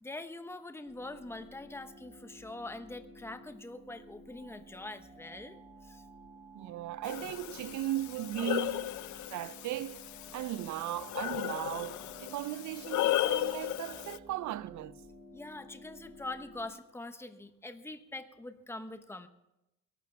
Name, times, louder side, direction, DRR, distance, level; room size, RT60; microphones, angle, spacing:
voice 1, 0.0-5.6 5.8-6.0 15.3-19.3, left 2 dB, 10° left, 1.1 m, -44 dB
sound 1, 0.8-16.7, right 1 dB, 15° right, 3.9 m, -54 dB
voice 2, 6.5-9.0 9.3-10.0 10.3-15.1, right 14 dB, 70° right, 0.6 m, -37 dB
Breathing, 7.0-14.2, left 15 dB, 75° left, 0.6 m, -35 dB
22.0 x 12.5 x 3.5 m
cardioid pair, 90°, 30 cm